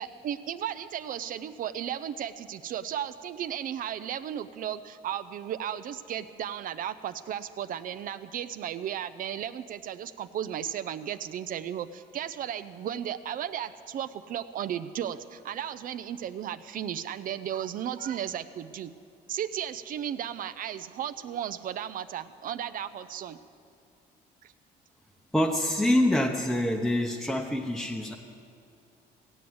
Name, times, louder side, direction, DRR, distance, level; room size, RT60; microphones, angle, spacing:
voice 1, 0.0-18.9 19.3-23.4 24.4-24.5, right 10 dB, 55° right, 12 dB, 0.5 m, -35 dB
voice 2, 25.3-28.2, left 1 dB, ahead, 1 dB, 0.8 m, -26 dB
16.5 x 8.5 x 7.9 m, 2.4 s
cardioid pair, 110°, 17 cm